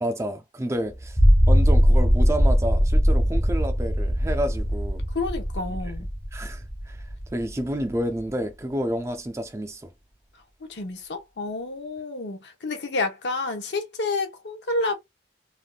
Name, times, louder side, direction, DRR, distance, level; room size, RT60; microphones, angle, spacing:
voice 1, 0.0-1.2 1.5-5.0 6.3-7.0 7.3-9.9, equal, 15° right, 0.4 m, -29 dB
sound 1, 1.0-7.5, equal, 15° left, 0.8 m, -20 dB
voice 2, 5.1-6.1 10.7-14.9, left 3 dB, 80° left, 0.8 m, -29 dB
3.5 x 2.4 x 2.2 m
head